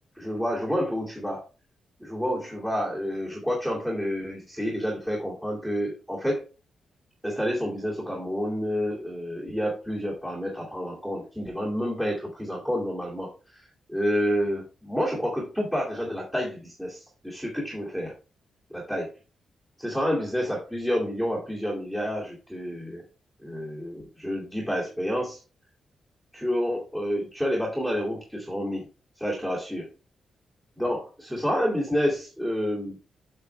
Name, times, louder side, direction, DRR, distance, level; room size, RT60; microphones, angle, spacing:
voice 1, 0.2-1.4 2.0-6.4 7.2-13.6 13.9-18.1 18.7-19.1 19.8-23.0 23.4-25.4 26.3-28.9 29.2-29.9 30.8-33.0, equal, ahead, -7 dB, 2.6 m, -29 dB
8.1 x 6.5 x 3.4 m, 0.33 s
wide cardioid pair, 170°, 0 cm